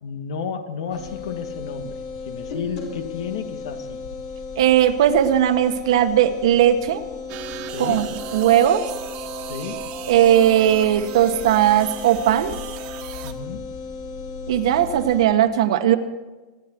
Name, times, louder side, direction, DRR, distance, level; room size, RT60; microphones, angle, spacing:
voice 1, 0.0-4.0 7.7-8.1 9.4-9.9 13.2-13.7, left 6 dB, 90° left, 8 dB, 1.8 m, -32 dB
sound 1, 0.9-15.3, left 5 dB, 55° left, 4.2 m, -35 dB
voice 2, 4.6-7.0 7.8-8.1 8.3-8.8 10.1-12.6 14.5-16.0, right 11 dB, 80° right, 8 dB, 1.3 m, -18 dB
sound 2, 7.3-13.3, right 11 dB, 40° right, 1.3 m, -36 dB
25.0 x 10.5 x 4.5 m, 1.2 s
supercardioid pair, 160°, 3 cm